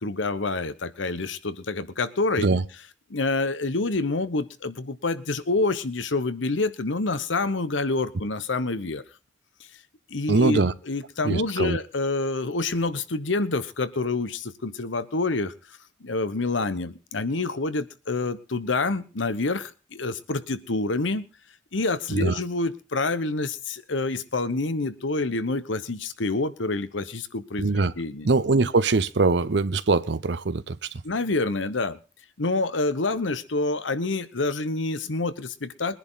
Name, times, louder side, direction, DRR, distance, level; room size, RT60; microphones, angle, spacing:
voice 1, 0.0-2.5 3.1-9.0 10.1-15.5 16.0-21.2 21.7-28.3 31.0-32.0 32.4-36.0, left 3 dB, 80° left, 1.1 m, -27 dB
voice 2, 10.3-10.7 11.2-11.8 22.1-22.3 27.6-27.9 28.2-30.8, right 3 dB, 65° right, 0.6 m, -22 dB
22.0 x 10.5 x 4.0 m
head